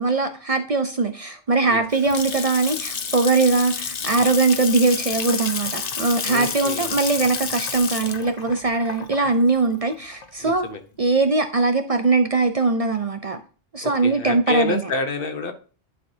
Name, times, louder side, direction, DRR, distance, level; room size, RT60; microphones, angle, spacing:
voice 1, 0.0-10.7 11.0-13.4 13.7-14.8, right 3 dB, 40° right, 0.6 m, -21 dB
Water tap faucet / Sink (filling or washing) / Splash splatter, 1.7-10.5, left 6 dB, 45° left, 0.8 m, -30 dB
voice 2, 6.2-6.9 10.4-10.8 13.8-15.5, left 3 dB, 65° left, 1.1 m, -28 dB
11.0 x 4.7 x 2.7 m
omnidirectional pair, 1.0 m